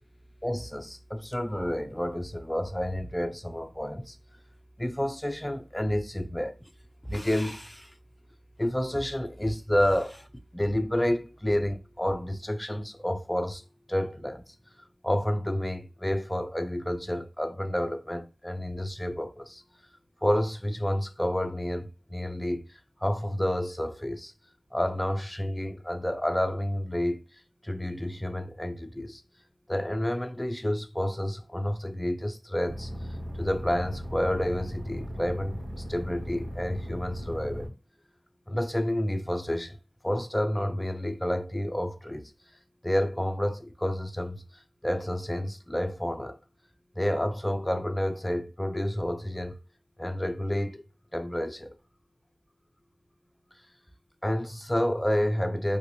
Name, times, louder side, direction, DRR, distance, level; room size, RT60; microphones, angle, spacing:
voice 1, 0.4-4.2 4.8-6.6 7.0-7.9 8.6-10.3 10.5-13.6 13.9-14.5 15.0-19.6 20.2-24.3 24.7-27.2 27.6-29.2 29.7-32.9 33.4-35.6 35.9-37.7 38.5-39.8 40.0-42.3 42.8-46.4 47.0-49.6 50.0-50.8 51.1-51.7 54.2-55.8, left 1 dB, 10° left, 0.5 m, -29 dB
sound 1, 32.7-37.7, equal, 65° right, 1.8 m, -37 dB
3.2 x 2.5 x 3.0 m
wide cardioid pair, 55°, 0 cm